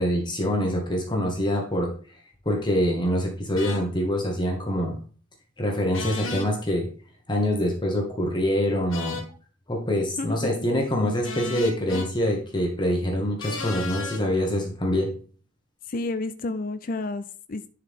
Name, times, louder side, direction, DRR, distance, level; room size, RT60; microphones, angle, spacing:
voice 1, 0.0-1.9 2.4-5.0 5.6-6.9 7.3-9.2 9.7-15.1, equal, 25° left, 1.5 m, -25 dB
sound 1, 3.6-3.8 5.9-6.5 8.9-9.3 11.2-12.1 13.4-14.2, left 3 dB, 80° left, 1.4 m, -34 dB
voice 2, 10.2-10.5 15.9-17.7, left 2 dB, 45° left, 0.5 m, -30 dB
10.5 x 4.7 x 3.6 m
head